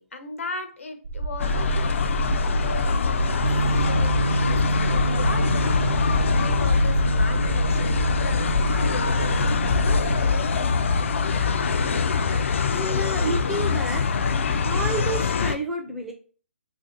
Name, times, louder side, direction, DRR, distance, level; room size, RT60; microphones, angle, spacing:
voice 1, 0.0-2.0 2.5-3.4 3.7-5.8 6.3-10.3 11.0-11.1, left 3 dB, 85° left, 6 dB, 0.8 m, -37 dB
sound 1, 1.0-10.2, right 4 dB, 70° right, 0.7 m, -30 dB
sound 2, 1.4-15.6, left 5 dB, 70° left, 0.4 m, -24 dB
sound 3, 3.4-12.5, right 2 dB, 85° right, 0.4 m, -28 dB
voice 2, 12.7-14.1 14.6-16.1, right 2 dB, 5° right, 1 dB, 0.4 m, -30 dB
2.8 x 2.7 x 3.7 m, 0.40 s
hypercardioid pair, 160°, 7 cm